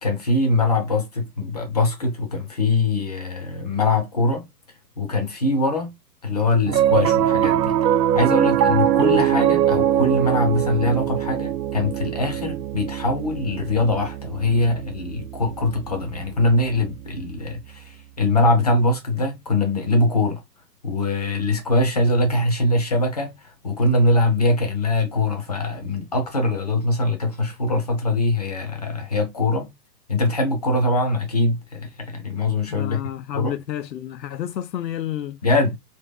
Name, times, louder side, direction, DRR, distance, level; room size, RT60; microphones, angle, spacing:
voice 1, 0.0-4.5 5.0-5.9 6.2-7.8 8.1-20.4 20.8-29.7 30.1-33.0 33.3-33.5 35.4-35.8, left 2 dB, 25° left, 0.7 m, -22 dB
Piano, 6.7-17.2, right 10 dB, 85° right, 0.6 m, -22 dB
voice 2, 32.7-35.4, left 11 dB, 85° left, 0.7 m, -30 dB
3.6 x 2.9 x 3.8 m
hypercardioid pair, 170°, 49 cm